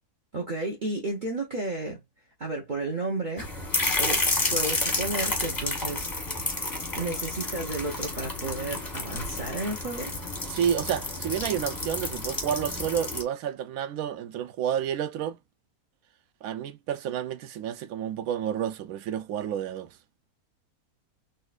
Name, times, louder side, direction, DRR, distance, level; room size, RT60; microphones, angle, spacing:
voice 1, 0.3-2.0 2.4-3.5 4.0-4.2 4.5-6.1 7.0-10.1, right 2 dB, 35° right, 0.9 m, -32 dB
sound 1, 3.4-13.2, left 2 dB, 15° left, 0.8 m, -30 dB
voice 2, 10.5-15.4 16.4-19.9, right 9 dB, 70° right, 1.0 m, -30 dB
4.1 x 2.7 x 2.4 m
omnidirectional pair, 1.6 m